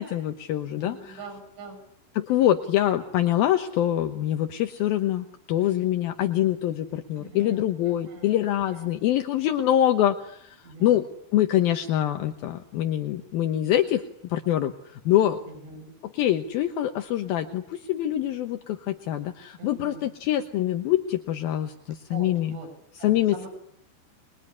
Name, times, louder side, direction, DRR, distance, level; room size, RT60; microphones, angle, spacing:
voice 1, 0.0-1.2 2.1-11.0 11.3-15.4 16.0-22.6 23.0-23.5, left 12 dB, 70° left, 5 dB, 2.3 m, -25 dB
voice 2, 0.8-1.8 7.2-8.4 8.7-8.9 10.6-11.0 15.5-15.9 19.6-20.1 22.1-22.7 23.0-23.5, right 3 dB, 70° right, 3 dB, 9.4 m, -43 dB
26.0 x 22.0 x 9.7 m, 0.71 s
omnidirectional pair, 5.7 m